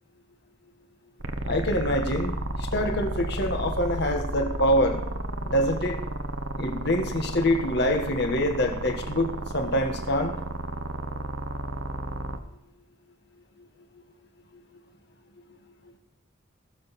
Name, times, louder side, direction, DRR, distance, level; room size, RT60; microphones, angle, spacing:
sound 1, 1.2-12.4, right 1 dB, 80° right, 1.1 m, -32 dB
voice 1, 1.4-2.3 2.6-5.0 5.4-6.0 6.6-10.3, left 1 dB, 55° left, 4 dB, 1.6 m, -25 dB
19.5 x 7.2 x 4.3 m, 0.80 s
head